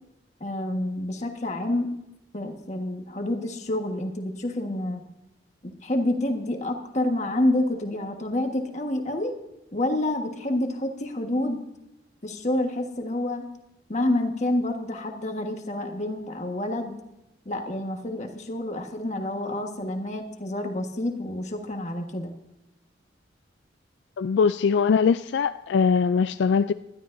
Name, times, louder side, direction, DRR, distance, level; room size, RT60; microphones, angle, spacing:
voice 1, 0.4-1.9 2.3-5.0 5.6-9.3 9.7-11.7 12.2-13.4 13.9-16.9 17.4-22.3, left 1 dB, 40° left, 4 dB, 1.5 m, -28 dB
voice 2, 24.2-26.7, left 5 dB, 75° left, 12 dB, 0.3 m, -21 dB
19.5 x 12.0 x 2.6 m, 0.92 s
head